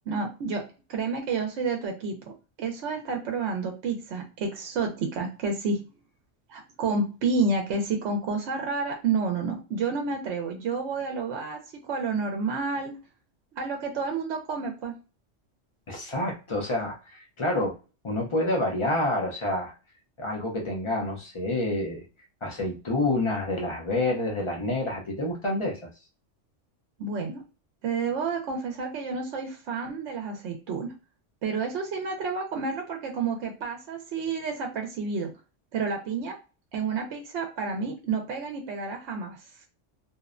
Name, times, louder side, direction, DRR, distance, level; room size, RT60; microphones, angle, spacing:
voice 1, 0.1-0.6 0.9-2.3 2.6-5.8 6.5-12.9 13.5-14.9 27.0-27.4 27.8-30.9 31.4-35.3 35.7-36.4 36.7-39.4, right 4 dB, 70° right, 3 dB, 0.8 m, -30 dB
voice 2, 15.9-17.8 18.0-19.7 20.2-22.0 22.4-25.9, left 2 dB, 45° left, 0 dB, 0.4 m, -28 dB
2.6 x 2.1 x 2.4 m, 0.33 s
omnidirectional pair, 1.3 m